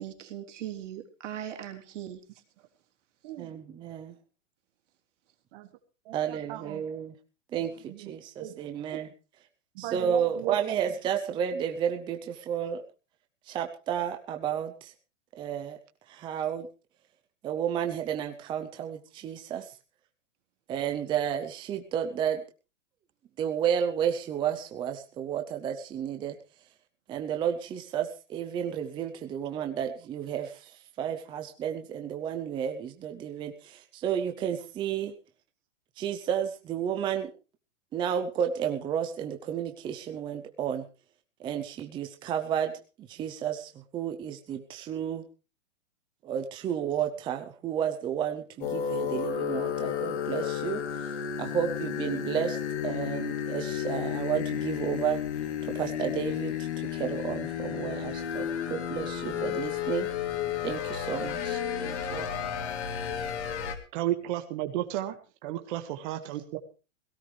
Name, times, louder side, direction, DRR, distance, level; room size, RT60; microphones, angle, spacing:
voice 1, 0.0-2.2, right 11 dB, 70° right, 5 dB, 3.5 m, -39 dB
voice 2, 3.4-4.2 6.1-7.2 7.5-9.1 9.8-12.8 13.5-14.9 15.4-15.8 16.1-16.7 17.4-19.7 20.7-22.4 23.4-26.4 27.1-35.1 36.0-37.3 37.9-40.9 41.4-42.7 43.0-45.3 46.2-51.1 51.4-55.2 55.6-60.1 60.6-62.3, right 9 dB, 15° right, 6 dB, 0.6 m, -32 dB
voice 3, 6.0-6.8 7.9-8.1 8.4-8.5 8.9-9.0 9.8-10.6 61.2-61.3 62.1-62.2 63.9-66.6, right 14 dB, 40° right, 6 dB, 1.7 m, -34 dB
sound 1, 48.6-63.8, left 9 dB, 60° left, 3.0 m, -32 dB
17.5 x 16.0 x 3.3 m, 0.33 s
supercardioid pair, 160°, 38 cm